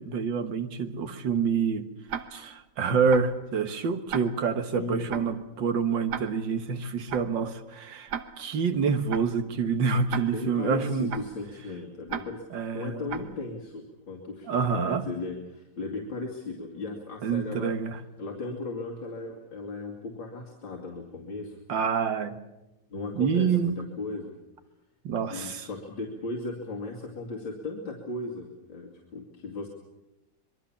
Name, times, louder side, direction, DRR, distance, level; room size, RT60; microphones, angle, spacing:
voice 1, 0.0-1.9 2.3-11.1 12.5-13.0 14.5-15.1 17.2-18.0 21.7-22.4 23.2-23.8 25.0-25.7, right 6 dB, 80° right, 2.1 m, -27 dB
Tick-tock, 2.1-2.6 3.1-3.4 4.1-4.6 5.1-5.4 6.1-6.6 7.1-7.4 8.1-8.6 9.1-9.4 10.1-10.6 11.1-11.4 12.1-12.6 13.1-13.4, right 7 dB, 65° right, 1.7 m, -37 dB
voice 2, 4.7-5.3 10.3-17.7 18.2-21.6 22.9-24.3 25.3-29.7, left 3 dB, 85° left, 3.2 m, -36 dB
25.5 x 22.0 x 7.2 m
omnidirectional pair, 2.0 m